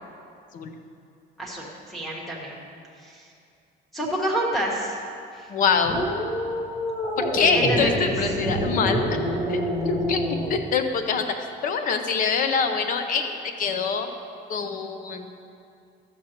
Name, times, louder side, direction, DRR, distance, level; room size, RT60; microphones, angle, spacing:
voice 1, 1.4-2.6 3.0-3.3 3.9-5.0 5.3-5.5 7.5-8.4, right 1 dB, ahead, -5 dB, 1.2 m, -28 dB
voice 2, 5.5-6.0 7.2-9.1 9.5-10.2 10.5-14.1 14.5-15.3, left 5 dB, 45° left, 7 dB, 0.6 m, -25 dB
sound 1, 5.8-10.6, equal, 25° left, 1.0 m, -27 dB
12.5 x 7.7 x 2.9 m, 2.5 s
cardioid pair, 170°, 20 cm